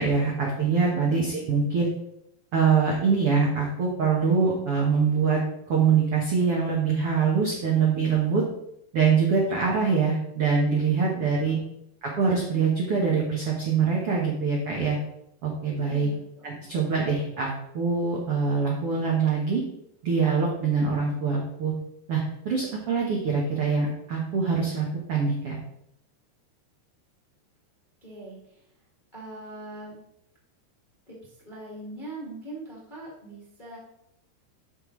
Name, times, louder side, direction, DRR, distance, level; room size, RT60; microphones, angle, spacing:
voice 1, 0.0-1.9 2.5-5.4 5.7-8.4 8.9-11.6 12.0-15.0 15.4-16.1 16.4-19.6 20.0-21.7 22.1-25.6, right 5 dB, 80° right, -2 dB, 1.3 m, -24 dB
voice 2, 15.8-16.5 28.0-28.6 29.1-29.9 31.1-33.8, right 2 dB, 25° left, -6 dB, 0.9 m, -42 dB
12.0 x 5.5 x 3.2 m, 0.78 s
omnidirectional pair, 4.6 m